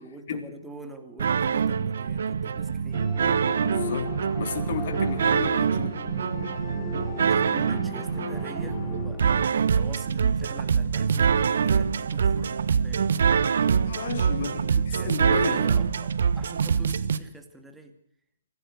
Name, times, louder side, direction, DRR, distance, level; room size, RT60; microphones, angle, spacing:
voice 1, 0.0-3.1 7.1-9.3 9.6-13.1 14.4-18.0, right 2 dB, 5° right, 6 dB, 2.4 m, -45 dB
sound 1, 1.2-17.2, right 6 dB, 60° right, 1.3 m, -25 dB
sound 2, 2.9-9.5, left 3 dB, 15° left, 3.4 m, -37 dB
voice 2, 3.6-6.0 13.9-14.7 15.0-15.6, left 7 dB, 45° left, 6 dB, 3.7 m, -33 dB
25.0 x 16.0 x 6.6 m, 0.66 s
figure-of-eight pair, 135°, 0 cm